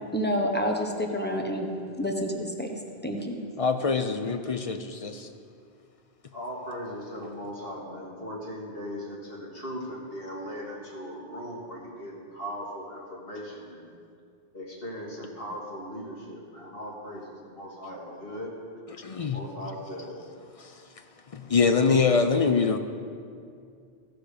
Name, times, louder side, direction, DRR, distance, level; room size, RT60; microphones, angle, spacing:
voice 1, 0.1-1.7 2.0-2.7 3.0-3.4, equal, 10° left, 2 dB, 0.9 m, -28 dB
voice 2, 3.6-5.3 18.9-19.4 20.6-20.7 21.3-22.8, left 5 dB, 50° left, 7 dB, 0.4 m, -24 dB
voice 3, 6.3-13.9 14.5-18.5 19.1-20.2, equal, 65° left, -5 dB, 2.5 m, -38 dB
16.5 x 6.0 x 5.0 m, 2.3 s
omnidirectional pair, 1.0 m